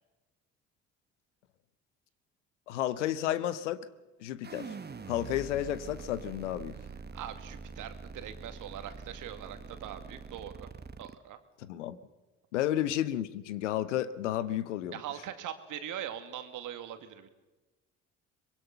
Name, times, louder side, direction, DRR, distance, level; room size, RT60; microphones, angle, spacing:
voice 1, 2.7-3.8 4.2-4.7 5.1-6.8 11.6-12.0 12.5-15.0, left 12 dB, 80° left, 15 dB, 1.0 m, -32 dB
sound 1, 4.4-11.1, right 5 dB, 30° right, 1.4 m, -45 dB
voice 2, 7.1-10.7 11.0-11.4 14.9-17.3, right 10 dB, 60° right, 8 dB, 2.1 m, -41 dB
24.0 x 22.0 x 5.9 m, 1.2 s
hypercardioid pair, 50°, 35 cm